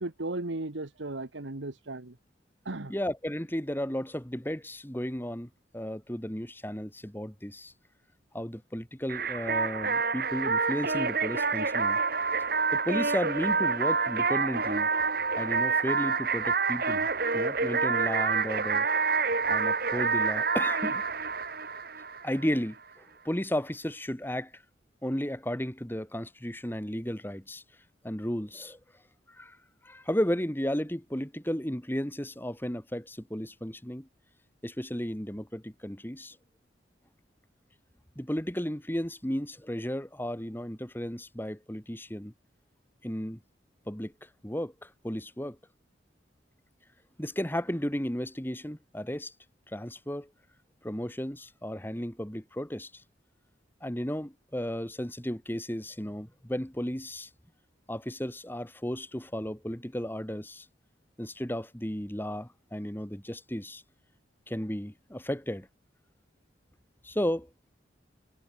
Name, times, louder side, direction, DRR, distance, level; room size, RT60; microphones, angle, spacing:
voice 1, 0.0-2.1 2.6-2.9, right 2 dB, 80° right, 1.6 m, -35 dB
voice 2, 2.9-7.7 8.3-12.0 12.4-17.1 17.3-18.9 19.5-21.0 22.2-24.6 25.0-27.6 28.0-28.8 29.3-29.6 29.8-34.1 34.6-36.4 38.2-42.3 43.0-43.4 43.9-44.1 44.4-45.6 47.2-49.3 49.7-50.3 50.8-53.0 53.8-57.3 57.9-60.7 61.2-63.8 64.5-65.7 67.0-67.5, equal, 10° left, 2.3 m, -34 dB
sound 1, 9.1-22.5, right 4 dB, 55° right, 5.0 m, -28 dB
head